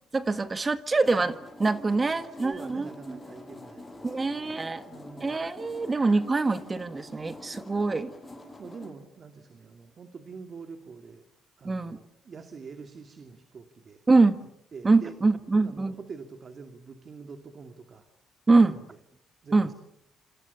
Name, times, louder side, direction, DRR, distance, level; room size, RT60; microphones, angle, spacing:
voice 1, 0.1-3.2 4.0-4.8 5.2-8.1 11.6-12.0 14.1-14.4 14.8-15.9 18.5-18.7 19.5-19.7, right 3 dB, 25° right, 11 dB, 1.6 m, -24 dB
sound 1, 1.0-8.9, left 2 dB, 20° left, 7.8 m, -45 dB
voice 2, 2.0-5.4 8.6-11.2 11.6-14.0 14.7-15.2 15.5-18.1 18.6-18.8 19.4-19.7, right 5 dB, 45° right, 7 dB, 2.6 m, -45 dB
27.5 x 27.5 x 7.0 m, 0.78 s
cardioid pair, 90°, 0 cm